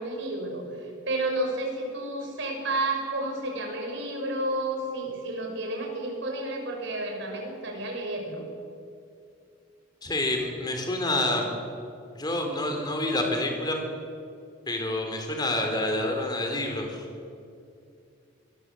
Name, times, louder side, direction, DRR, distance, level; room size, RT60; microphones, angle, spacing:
voice 1, 0.0-8.4, right 1 dB, 55° right, 2 dB, 6.0 m, -31 dB
voice 2, 10.0-11.5 12.1-13.8 14.7-17.0, left 1 dB, 20° left, 3 dB, 3.9 m, -28 dB
24.5 x 20.0 x 8.0 m, 2.5 s
head